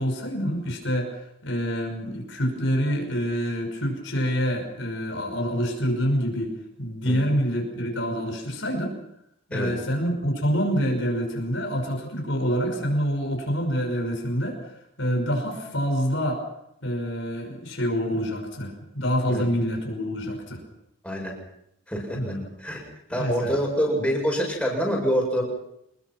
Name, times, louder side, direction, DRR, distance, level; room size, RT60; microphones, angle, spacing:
voice 1, 0.0-8.9 9.5-14.7 15.0-16.4 16.8-20.6 22.2-22.5 23.1-23.5, equal, 65° left, 3 dB, 6.0 m, -27 dB
voice 2, 21.0-21.3 21.9-22.2 22.6-22.8 23.1-25.4, equal, 5° left, -2 dB, 7.8 m, -25 dB
27.5 x 21.5 x 6.1 m, 0.80 s
head